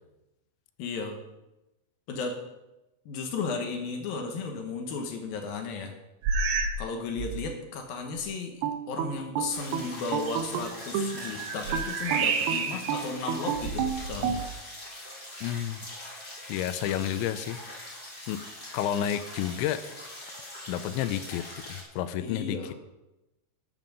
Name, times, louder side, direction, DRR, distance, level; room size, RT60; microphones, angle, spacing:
voice 1, 0.8-1.2 2.1-2.4 3.1-5.9 6.8-8.5 8.9-14.4 22.2-22.7, left 4 dB, 70° left, 4 dB, 2.5 m, -34 dB
sound 1, 6.2-6.9 7.2-7.5 8.2-8.3 10.7-13.0 13.5-14.6, right 4 dB, 70° right, 3.3 m, -30 dB
sound 2, 8.6-11.2 11.7-14.4, right 8 dB, 85° right, 2.2 m, -31 dB
sound 3, 9.5-21.8, left 1 dB, 15° left, 2.6 m, -43 dB
voice 2, 15.4-15.8 16.5-17.9 18.3-18.4 18.7-19.8 20.7-22.7, left 11 dB, 85° left, 12 dB, 2.8 m, -31 dB
12.5 x 7.5 x 6.7 m, 0.97 s
omnidirectional pair, 5.5 m